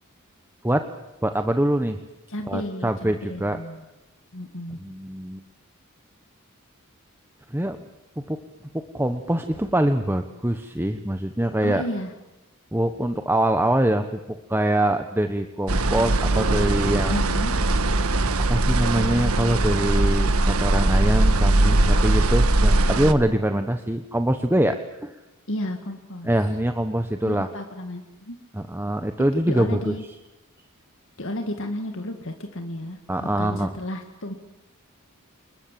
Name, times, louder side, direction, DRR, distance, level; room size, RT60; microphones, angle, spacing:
voice 1, 1.2-2.0 2.5-3.6 4.8-5.4 7.5-7.8 8.3-8.4 8.7-11.8 12.7-17.2 18.5-25.1 26.2-27.5 28.5-29.9 33.1-33.7, right 1 dB, 10° right, 7 dB, 1.1 m, -24 dB
voice 2, 2.3-3.8 4.3-4.8 11.6-12.1 17.1-17.6 25.5-26.3 27.2-28.4 29.5-30.0 31.2-34.3, left 1 dB, 60° left, 5 dB, 2.1 m, -32 dB
sound 1, 15.7-23.1, right 2 dB, 80° right, 1.6 m, -20 dB
28.0 x 21.5 x 7.5 m, 0.98 s
head